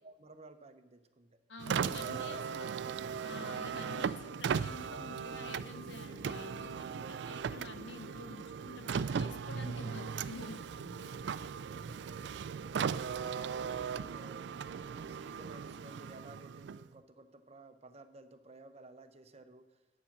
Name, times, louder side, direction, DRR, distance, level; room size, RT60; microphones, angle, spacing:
voice 1, 0.0-1.4 1.9-3.2 6.9-7.5 10.5-10.7 11.6-12.8 13.4-14.5 14.7-19.8, right 2 dB, 35° right, 9 dB, 0.8 m, -55 dB
voice 2, 1.5-2.8 3.2-11.2, left 3 dB, 90° left, 8 dB, 1.0 m, -49 dB
Car, 1.6-17.0, right 6 dB, 70° right, 0.3 m, -38 dB
10.0 x 8.5 x 6.0 m, 1.2 s
head